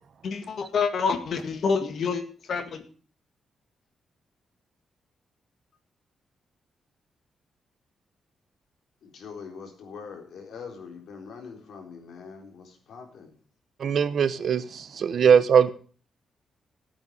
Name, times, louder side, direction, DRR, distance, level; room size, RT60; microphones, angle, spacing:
voice 1, 0.2-2.8, left 5 dB, 55° left, 8 dB, 1.9 m, -27 dB
voice 2, 9.0-13.3, left 5 dB, 70° left, 3 dB, 3.9 m, -43 dB
voice 3, 13.8-15.7, right 7 dB, 50° right, 13 dB, 1.0 m, -21 dB
14.0 x 8.9 x 6.6 m, 0.42 s
wide cardioid pair, 160°, 0 cm